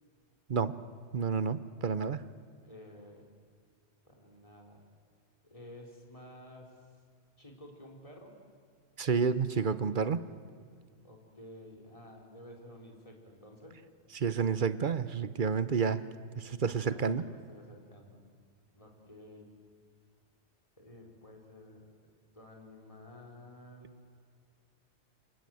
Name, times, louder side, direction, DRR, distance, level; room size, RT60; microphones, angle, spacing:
voice 1, 1.1-2.2 9.0-10.2 14.1-16.0 16.4-17.2, right 6 dB, 50° right, 13 dB, 1.0 m, -30 dB
voice 2, 2.6-3.3 4.0-4.8 5.4-6.9 7.4-8.4 11.0-13.8 16.7-18.2 18.7-19.5 20.8-21.9 22.3-24.0, left 1 dB, 30° left, 0 dB, 4.3 m, -52 dB
28.0 x 25.5 x 7.8 m, 2.1 s
omnidirectional pair, 1.2 m